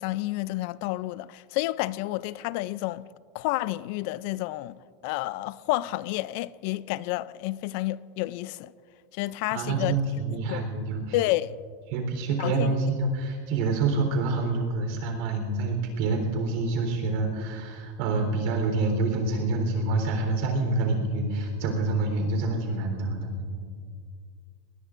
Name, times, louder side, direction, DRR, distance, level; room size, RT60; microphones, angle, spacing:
voice 1, 0.0-3.1 3.3-4.8 5.0-8.7 9.1-10.0 10.5-10.7 11.1-11.5 12.4-12.7, left 17 dB, 60° left, 0.3 m, -30 dB
voice 2, 9.5-11.2 11.9-23.6, right 3 dB, 60° right, 3.7 m, -27 dB
22.0 x 20.0 x 2.5 m
supercardioid pair, 145°, 0 cm